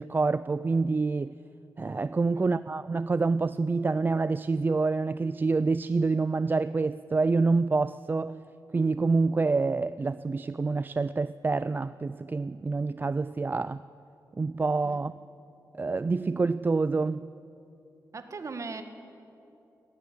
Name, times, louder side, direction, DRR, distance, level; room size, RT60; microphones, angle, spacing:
voice 1, 0.0-1.4 1.8-8.5 8.7-13.8 14.4-15.1 15.7-17.3, right 3 dB, 30° right, 15 dB, 0.4 m, -27 dB
voice 2, 2.3-2.7 14.8-15.0 18.1-18.8, right 4 dB, 45° right, 8 dB, 1.6 m, -39 dB
17.5 x 15.5 x 9.8 m, 2.8 s
cardioid pair, 80°, 7 cm